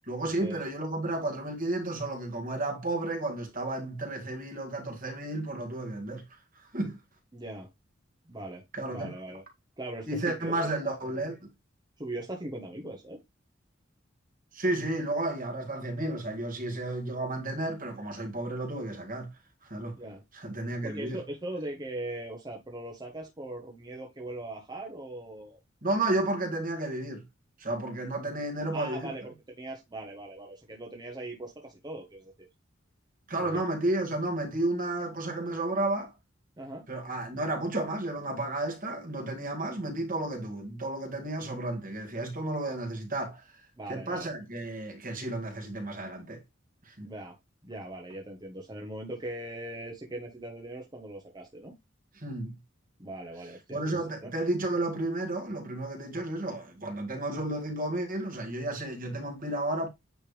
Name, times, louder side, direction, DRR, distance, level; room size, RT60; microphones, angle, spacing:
voice 1, 0.1-6.2 6.7-7.0 8.7-9.1 10.0-11.5 14.5-19.3 19.6-20.0 20.3-21.2 25.8-27.2 27.6-29.1 33.3-36.1 36.9-43.4 43.9-46.4 46.9-47.1 52.2-52.6 53.7-59.9, right 2 dB, 45° right, 1.9 m, -32 dB
voice 2, 7.3-7.7 8.3-9.4 9.8-11.0 12.0-13.2 19.9-20.2 20.8-25.6 28.7-32.5 33.4-33.6 36.6-36.8 43.8-44.3 47.0-47.4 47.6-51.7 53.0-54.0, right 1 dB, 20° right, 1.0 m, -40 dB
8.9 x 3.3 x 3.2 m
head